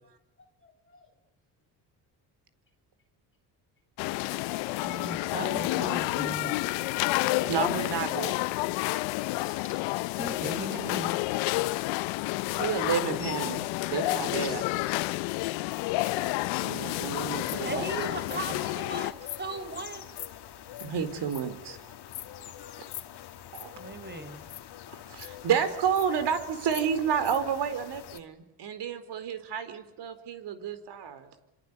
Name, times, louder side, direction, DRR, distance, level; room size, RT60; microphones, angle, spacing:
voice 1, 0.6-1.1 14.4-14.5 17.5-17.7 22.8-23.0 25.0-25.3, left 4 dB, 25° left, 2 dB, 3.3 m, -54 dB
sound 1, 4.0-19.1, left 20 dB, 85° left, 0.9 m, -30 dB
voice 2, 4.8-6.6 10.2-11.2 17.6-20.1 23.7-24.5, right 2 dB, 25° right, 12 dB, 4.3 m, -37 dB
voice 3, 7.5-8.4 12.5-14.6 16.6-17.9 18.5-18.6 20.8-21.9 23.5-23.7 24.9-31.3, right 7 dB, 65° right, 11 dB, 4.4 m, -30 dB
sound 2, 17.0-28.2, left 11 dB, 60° left, 2.2 m, -44 dB
27.0 x 25.5 x 8.3 m, 0.92 s
supercardioid pair, 70°, 44 cm